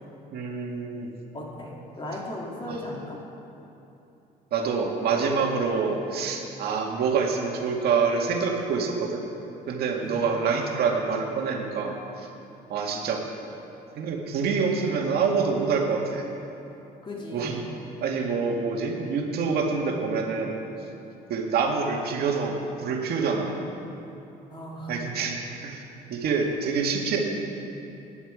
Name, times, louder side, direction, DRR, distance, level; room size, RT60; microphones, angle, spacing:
voice 1, 0.3-1.1 4.5-9.2 9.7-12.3 12.7-13.2 14.0-16.3 17.3-17.6 18.0-20.5 21.3-23.6 24.9-25.4 25.6-25.8 26.1-27.2, right 5 dB, 65° right, 1 dB, 2.0 m, -26 dB
voice 2, 1.3-3.2 10.0-10.3 17.0-17.6 24.5-24.9, left 1 dB, 30° left, -3 dB, 3.2 m, -36 dB
19.5 x 10.0 x 5.0 m, 2.9 s
cardioid pair, 110°, 17 cm